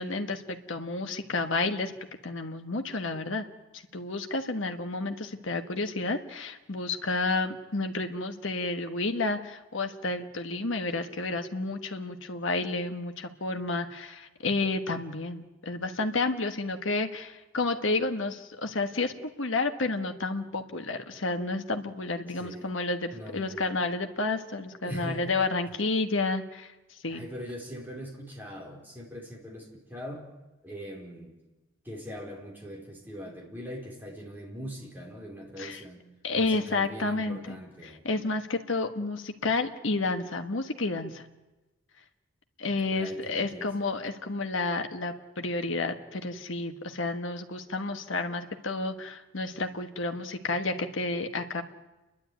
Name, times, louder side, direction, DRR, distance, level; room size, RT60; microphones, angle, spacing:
voice 1, 0.0-1.9 2.2-3.4 3.9-26.7 27.0-27.3 35.6-35.8 36.2-37.6 37.8-41.2 42.6-51.6, left 3 dB, 65° left, 6 dB, 1.5 m, -31 dB
voice 2, 22.4-22.7 23.1-23.7 24.8-25.3 27.0-30.3 30.6-31.3 31.8-36.0 36.3-38.1 42.9-43.7, equal, 10° right, -1 dB, 4.4 m, -41 dB
29.5 x 11.5 x 9.4 m, 1.1 s
head